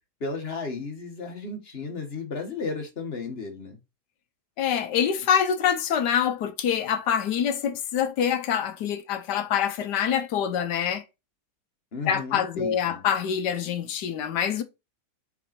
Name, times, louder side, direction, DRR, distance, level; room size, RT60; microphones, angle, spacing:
voice 1, 0.2-3.8 11.9-13.0, left 4 dB, 40° left, 1.5 m, -34 dB
voice 2, 4.6-11.0 12.1-14.6, left 8 dB, 80° left, 1.3 m, -25 dB
5.3 x 4.2 x 4.2 m
omnidirectional pair, 1.8 m